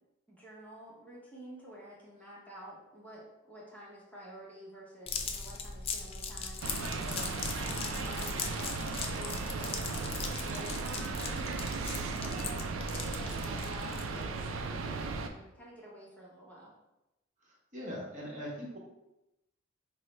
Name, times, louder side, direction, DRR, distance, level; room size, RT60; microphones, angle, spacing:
voice 1, 0.3-7.1 7.4-12.5 13.0-16.7, equal, 10° left, -6 dB, 0.7 m, -50 dB
sound 1, 5.1-14.2, left 5 dB, 30° left, 0.3 m, -39 dB
sound 2, 6.6-15.3, right 4 dB, 80° right, 0.3 m, -36 dB
voice 2, 17.4-18.8, equal, 40° right, -4 dB, 0.9 m, -41 dB
4.6 x 2.0 x 3.1 m, 0.94 s
head